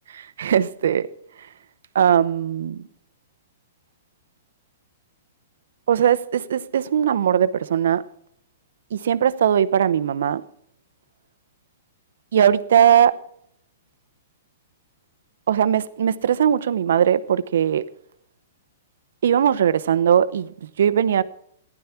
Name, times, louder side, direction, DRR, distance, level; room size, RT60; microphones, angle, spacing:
voice 1, 0.4-1.1 1.9-2.8 5.9-8.0 8.9-10.4 12.3-13.2 15.5-17.8 19.2-21.2, right 9 dB, 75° right, 0.8 m, -19 dB
15.5 x 11.0 x 5.8 m
hypercardioid pair, 135°, 0 cm